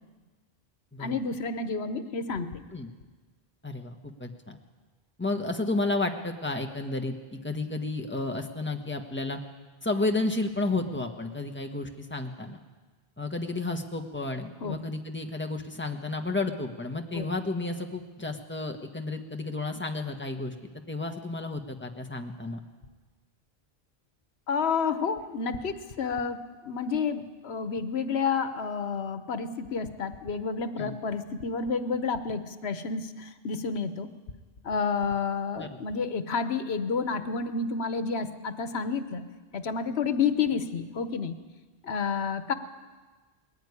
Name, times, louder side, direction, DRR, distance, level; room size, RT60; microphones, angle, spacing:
voice 1, 1.0-2.6 14.6-14.8 17.1-17.3 24.5-34.1 34.6-39.2 39.5-41.3 41.8-42.5, left 5 dB, 90° left, 10 dB, 1.3 m, -30 dB
voice 2, 3.6-4.6 5.2-9.4 9.8-12.6 13.2-20.5 20.9-22.6 30.8-30.9 35.6-35.7, left 2 dB, 10° left, 4 dB, 1.4 m, -32 dB
20.5 x 14.5 x 9.7 m, 1.4 s
omnidirectional pair, 1.0 m